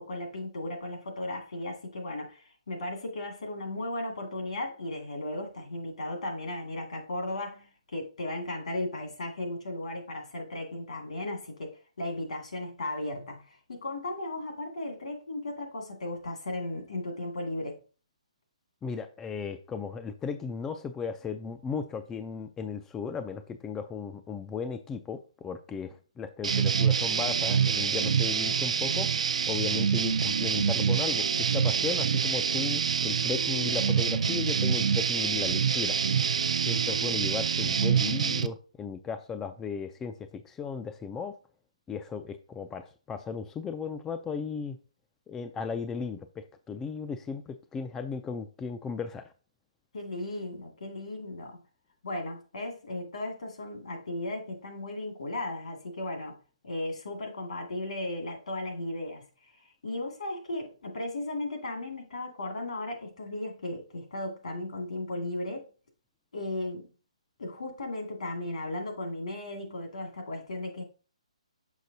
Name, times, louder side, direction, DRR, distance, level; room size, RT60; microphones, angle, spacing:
voice 1, 0.0-17.8 49.9-51.6 52.0-56.4 56.6-59.2 59.8-65.7 66.3-66.9 67.4-70.8, left 1 dB, 75° left, 2.2 m, -36 dB
voice 2, 18.8-29.1 29.5-36.0 36.6-41.4 41.9-44.8 45.3-49.3, left 5 dB, 10° left, 0.3 m, -36 dB
sound 1, 26.4-38.5, right 6 dB, 65° right, 0.4 m, -26 dB
6.4 x 5.7 x 2.7 m
hypercardioid pair, 150°, 4 cm